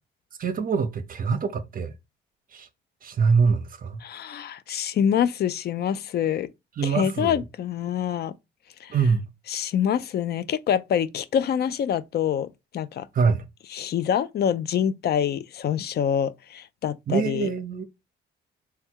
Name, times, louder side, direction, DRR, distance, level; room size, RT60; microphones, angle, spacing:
voice 1, 0.4-1.9 2.5-2.7 3.0-4.0 6.8-7.4 8.9-9.3 13.1-13.4 17.1-17.8, right 5 dB, 45° right, 0.6 m, -24 dB
voice 2, 4.0-6.5 6.8-8.3 8.8-8.9 9.5-12.5 12.7-13.1 13.7-17.5, left 9 dB, 55° left, 0.4 m, -26 dB
3.4 x 2.3 x 4.4 m
cardioid pair, 90°, 20 cm